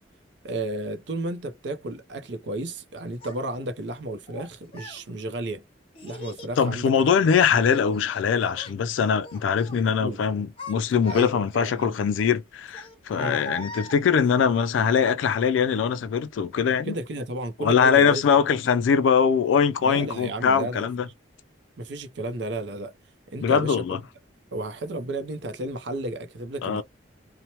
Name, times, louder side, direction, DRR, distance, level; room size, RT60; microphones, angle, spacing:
voice 1, 0.4-5.6 6.0-6.9 10.0-10.3 11.1-11.9 13.2-13.4 16.9-18.2 19.8-20.9 21.8-22.9 23.3-24.0 24.5-26.8, right 1 dB, 65° right, 0.5 m, -33 dB
Child speech kid speaking, 3.2-3.4 4.3-5.0 5.9-6.5 7.0-8.2 8.5-8.8 9.2-9.8 10.3-11.7 12.7-14.4, left 1 dB, 30° left, 0.7 m, -41 dB
voice 2, 6.6-16.9 17.6-21.1 23.4-24.0 26.6-26.8, left 6 dB, 85° left, 0.3 m, -22 dB
2.9 x 2.1 x 2.8 m
head